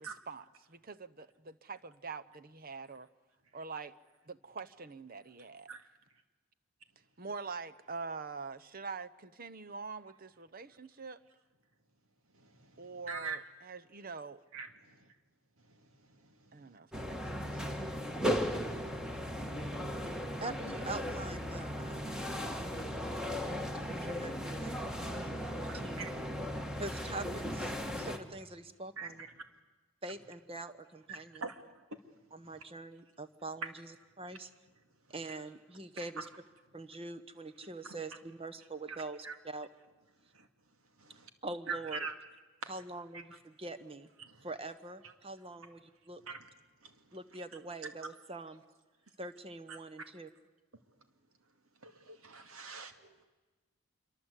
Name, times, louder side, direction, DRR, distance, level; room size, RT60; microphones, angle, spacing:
voice 1, 0.0-3.1 3.5-3.9 4.3-5.7 7.2-11.2 12.8-14.4 16.5-17.6, right 4 dB, 45° right, 12 dB, 0.9 m, -45 dB
voice 2, 13.1-13.4 14.5-14.7 22.4-22.5 25.7-26.2 29.0-29.1 31.1-31.6 39.2-39.3 41.0-41.3 41.7-42.1 42.6-42.7 44.2-44.3 46.3-46.4 51.8-53.1, right 5 dB, 80° right, 7 dB, 2.3 m, -41 dB
sound 1, 16.9-28.2, equal, 5° right, 1.6 m, -37 dB
voice 3, 20.4-22.3 23.9-24.8 25.1-26.1 26.8-29.3 30.0-31.4 32.3-34.5 35.1-36.3 36.7-39.7 41.4-42.1 42.7-44.1 44.4-46.2 47.1-48.6 49.2-50.3, right 2 dB, 25° right, 12 dB, 1.2 m, -44 dB
26.0 x 23.5 x 8.3 m, 1.3 s
head